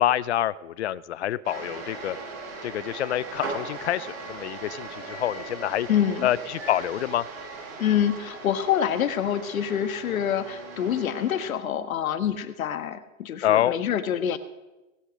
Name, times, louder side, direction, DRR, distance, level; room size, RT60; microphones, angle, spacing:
voice 1, 0.0-2.2 2.6-5.9 6.2-7.3 13.4-13.7, left 12 dB, 55° left, 20 dB, 0.5 m, -26 dB
sound 1, 1.4-11.5, right 3 dB, 80° right, 6.8 m, -39 dB
voice 2, 5.9-6.3 7.8-14.4, left 9 dB, 80° left, 10 dB, 1.5 m, -26 dB
18.5 x 8.3 x 6.4 m, 1.1 s
supercardioid pair, 180°, 41 cm